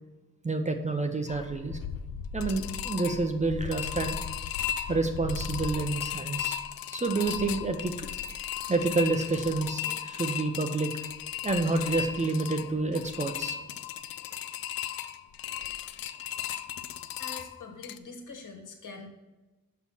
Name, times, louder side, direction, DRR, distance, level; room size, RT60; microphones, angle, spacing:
voice 1, 0.4-1.8 2.3-4.2 4.9-6.6 6.9-7.9 8.7-10.9 11.4-13.6, right 3 dB, 20° right, 5 dB, 0.7 m, -28 dB
sound 1, 1.3-18.0, left 9 dB, 80° left, 0.5 m, -36 dB
voice 2, 17.2-19.1, left 3 dB, 60° left, 3 dB, 1.6 m, -44 dB
6.5 x 5.6 x 5.5 m, 1.1 s
wide cardioid pair, 125°, 35 cm